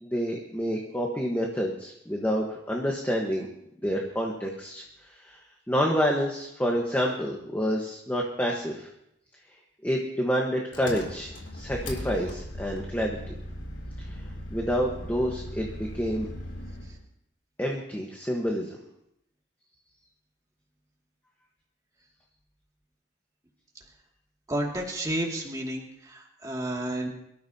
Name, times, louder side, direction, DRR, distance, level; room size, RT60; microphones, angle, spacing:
voice 1, 0.0-3.5 3.8-4.8 5.2-5.4 5.7-8.9 9.8-13.2 14.5-15.7 15.9-16.3 17.6-18.8, equal, 10° left, -1 dB, 1.3 m, -28 dB
Engine, 10.7-17.0, left 1 dB, 85° left, 3.3 m, -38 dB
voice 2, 24.5-27.1, right 1 dB, 20° right, -1 dB, 2.4 m, -31 dB
24.0 x 13.0 x 2.9 m, 0.78 s
head